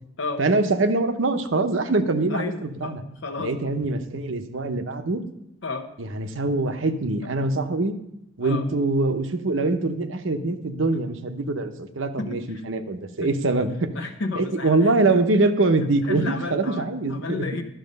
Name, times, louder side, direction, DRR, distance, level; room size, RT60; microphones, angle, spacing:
voice 1, 0.4-3.0 3.4-5.2 6.1-8.0 8.4-13.9 14.3-17.5, right 2 dB, 70° right, 8 dB, 0.8 m, -23 dB
voice 2, 2.3-3.7 5.6-5.9 7.2-7.3 8.4-8.7 12.2-12.6 13.2-13.3 13.9-14.9 16.0-17.6, left 3 dB, 65° left, 4 dB, 0.8 m, -32 dB
11.5 x 6.4 x 5.2 m, 0.79 s
head